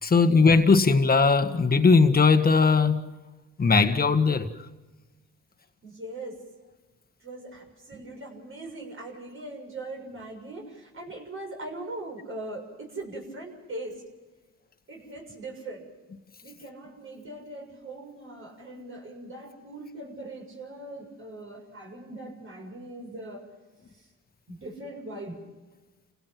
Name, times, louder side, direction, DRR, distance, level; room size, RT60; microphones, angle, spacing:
voice 1, 0.0-3.0 3.6-4.5, left 4 dB, 30° left, 1.8 m, -19 dB
voice 2, 5.8-6.4 7.2-14.0 14.9-15.9 16.4-23.5 24.5-25.4, right 2 dB, 45° right, 6.8 m, -40 dB
29.5 x 17.0 x 6.1 m
cardioid pair, 90°, 30 cm